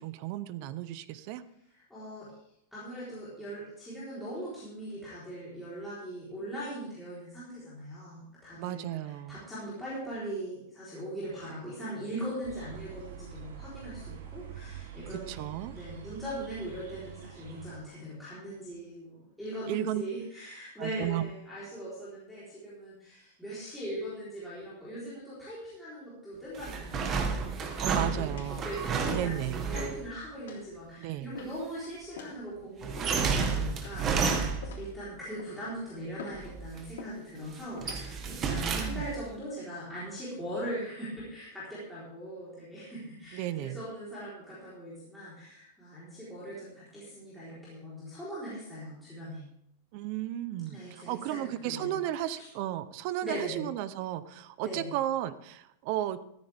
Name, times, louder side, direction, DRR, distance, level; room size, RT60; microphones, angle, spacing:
voice 1, 0.0-1.4 8.6-9.5 15.1-15.7 19.7-20.0 20.8-21.2 27.8-28.7 29.0-29.7 31.0-31.3 38.7-39.1 43.3-43.8 49.9-56.2, right 13 dB, 40° right, 14 dB, 0.7 m, -34 dB
voice 2, 1.7-2.3 2.7-27.2 27.5-49.4 50.7-52.5 53.2-53.6 54.6-54.9, right 1 dB, ahead, -11 dB, 4.0 m, -40 dB
sound 1, 12.4-17.8, right 8 dB, 85° right, 3.2 m, -46 dB
sound 2, 26.5-30.1 32.8-34.9 36.3-36.9 37.3-39.2, right 5 dB, 20° right, 1.3 m, -31 dB
sound 3, 27.6-28.0 28.4-28.6 29.1-29.4 29.7-30.0 30.5-30.7 31.3-31.7 32.1-32.4 33.0-33.4 33.8-34.2 34.6-35.0 35.4-35.7 36.2-36.5 37.0-37.2 37.8-38.0 38.7-39.0, left 6 dB, 80° left, 3.5 m, -45 dB
14.0 x 13.5 x 3.5 m, 0.74 s
supercardioid pair, 175°, 0 cm